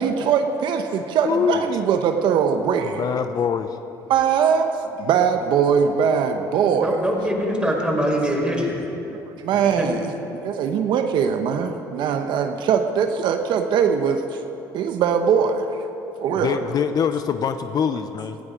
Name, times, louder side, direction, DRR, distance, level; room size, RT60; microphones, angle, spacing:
voice 1, 0.0-3.0 4.1-7.0 9.1-10.1 10.4-14.4 14.7-15.7 16.2-16.5, right 7 dB, 70° right, 5 dB, 1.0 m, -21 dB
voice 2, 1.2-1.7 2.8-3.8 16.4-18.4, left 7 dB, 50° left, 9 dB, 0.8 m, -24 dB
voice 3, 6.8-8.8 9.8-9.9, equal, 10° right, -1 dB, 4.9 m, -23 dB
18.5 x 15.0 x 5.2 m, 3.0 s
supercardioid pair, 80°, 8 cm